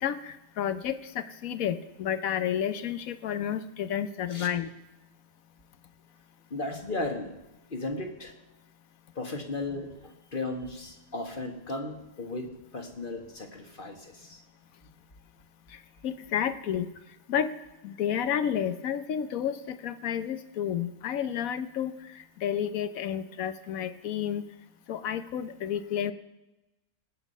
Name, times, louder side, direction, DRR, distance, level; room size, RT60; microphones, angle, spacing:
voice 1, 0.0-4.7 15.7-16.9 17.3-17.5 17.8-24.4 24.9-26.1, left 9 dB, 70° left, 12 dB, 1.2 m, -31 dB
voice 2, 6.5-7.3 7.7-8.4 9.1-14.4 14.8-14.9, left 2 dB, 35° left, 5 dB, 1.6 m, -36 dB
19.0 x 8.2 x 5.5 m, 1.0 s
omnidirectional pair, 1.6 m